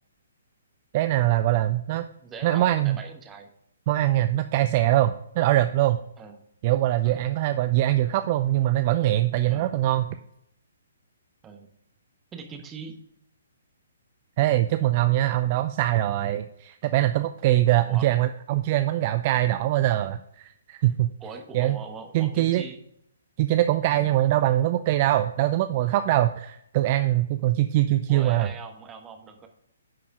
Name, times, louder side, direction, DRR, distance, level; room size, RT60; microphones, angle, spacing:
voice 1, 0.9-2.0 2.4-3.0 3.9-6.0 6.6-10.2 14.4-21.1 21.5-21.8 22.1-22.6 23.4-28.5, right 14 dB, 35° right, 10 dB, 0.4 m, -23 dB
voice 2, 2.2-3.5 6.2-6.4 7.0-7.2 9.5-9.7 11.4-11.7 12.3-12.9 17.9-18.1 21.2-22.8 28.1-29.5, right 5 dB, 15° right, 4 dB, 1.2 m, -41 dB
10.5 x 4.7 x 4.8 m, 0.75 s
figure-of-eight pair, 130°, 0 cm